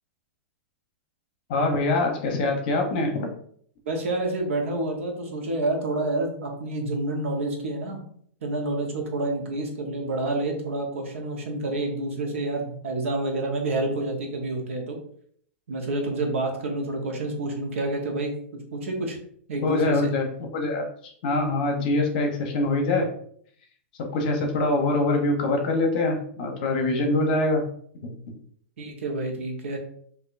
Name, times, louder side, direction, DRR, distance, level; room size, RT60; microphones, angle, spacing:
voice 1, 1.5-3.3 19.6-20.3 20.5-23.1 24.0-27.6 28.0-28.1, left 2 dB, 45° left, 3 dB, 0.8 m, -24 dB
voice 2, 3.9-8.0 8.4-15.0 15.7-18.3 18.7-19.2 19.5-20.1 28.8-29.8, right 2 dB, 75° right, 2 dB, 1.0 m, -28 dB
4.3 x 2.6 x 2.5 m, 0.62 s
supercardioid pair, 165°, 7 cm